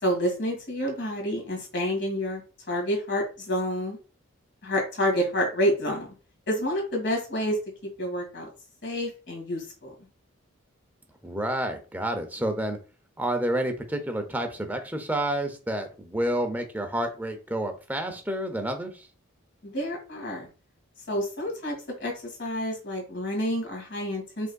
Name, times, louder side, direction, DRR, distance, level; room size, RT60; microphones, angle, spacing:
voice 1, 0.0-2.4 2.7-4.0 4.6-6.1 6.5-7.6 7.8-8.5 8.8-9.9 19.6-20.5 21.1-24.5, equal, 55° left, 1 dB, 1.9 m, -28 dB
voice 2, 11.2-12.8 13.2-19.1, right 1 dB, 10° right, 5 dB, 0.6 m, -29 dB
5.2 x 3.5 x 2.3 m, 0.34 s
head